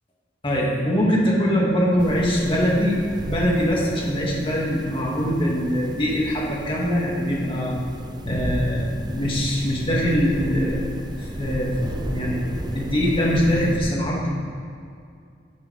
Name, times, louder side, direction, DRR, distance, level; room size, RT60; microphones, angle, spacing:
voice 1, 0.4-3.0 3.2-7.7 8.2-10.8 11.1-11.8 12.1-12.4 12.7-14.4, equal, 30° left, -4 dB, 2.2 m, -22 dB
sound 1, 2.0-13.8, right 1 dB, 25° right, 0.6 m, -34 dB
12.5 x 9.6 x 3.5 m, 2.4 s
head